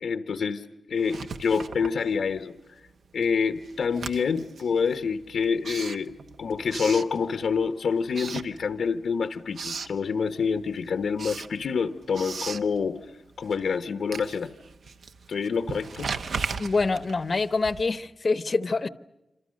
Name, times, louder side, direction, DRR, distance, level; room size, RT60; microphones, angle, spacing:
voice 1, 0.0-2.5 3.1-6.1 6.4-13.0 13.4-14.5 15.3-16.1, left 5 dB, 90° left, 1.1 m, -27 dB
Writing, 1.0-2.6 2.9-7.7 8.1-9.1 9.3-10.0 10.4-18.1, right 5 dB, 75° right, 1.1 m, -38 dB
voice 2, 16.6-18.9, left 3 dB, 40° left, 0.8 m, -25 dB
27.0 x 27.0 x 6.5 m
wide cardioid pair, 150°, 0 cm